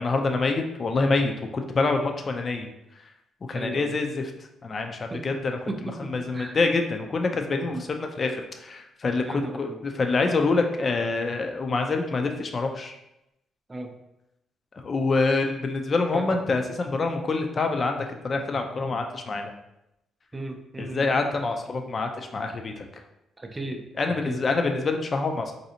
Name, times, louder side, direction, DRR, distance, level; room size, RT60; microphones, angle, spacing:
voice 1, 0.0-2.7 3.5-4.3 4.6-5.6 6.0-13.0 14.7-19.5 20.8-22.8 24.0-25.5, left 3 dB, 40° left, 4 dB, 0.4 m, -26 dB
voice 2, 3.5-4.0 5.1-5.3 5.7-6.6 7.6-7.8 9.2-9.8 13.7-13.9 16.1-16.2 20.3-21.2 23.4-23.8 24.2-24.4, right 2 dB, 20° right, 5 dB, 0.5 m, -35 dB
4.0 x 2.6 x 2.7 m, 0.86 s
cardioid pair, 90°, 0 cm